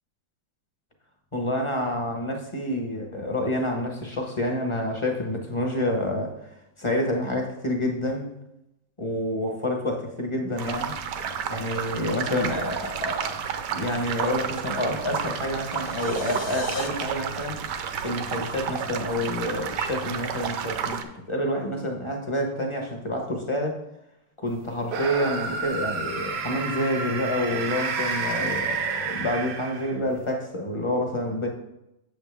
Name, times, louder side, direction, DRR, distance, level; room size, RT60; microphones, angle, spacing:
voice 1, 1.3-6.5 6.8-8.3 9.0-10.9 11.5-17.6 18.0-21.0 21.3-23.8 24.4-31.5, left 1 dB, 25° left, 2 dB, 0.7 m, -28 dB
sound 1, 10.6-21.0, right 7 dB, 70° right, 1.2 m, -31 dB
sound 2, 15.3-16.9, left 4 dB, 50° left, 1.3 m, -41 dB
sound 3, 24.9-30.1, right 5 dB, 85° right, 1.7 m, -30 dB
7.9 x 7.0 x 3.4 m, 0.86 s
omnidirectional pair, 2.1 m